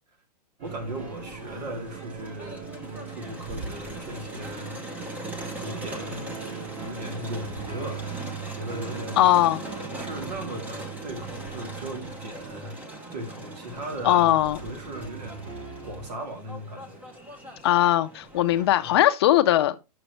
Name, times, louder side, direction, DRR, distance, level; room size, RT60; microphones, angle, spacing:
Crowd, 0.6-18.9, right 1 dB, 5° right, 0.7 m, -40 dB
sound 1, 0.6-16.1, right 6 dB, 30° right, 2.3 m, -41 dB
voice 1, 0.6-2.7 3.1-4.8 5.6-6.4 6.8-8.0 8.4-9.3 9.9-12.8 13.1-15.4 15.8-17.0 18.8-19.0, right 1 dB, 75° right, 2.8 m, -37 dB
voice 2, 9.2-9.6 14.0-14.6 17.6-19.7, left 13 dB, 40° left, 0.5 m, -20 dB
8.8 x 6.2 x 3.2 m
hypercardioid pair, 160°, 21 cm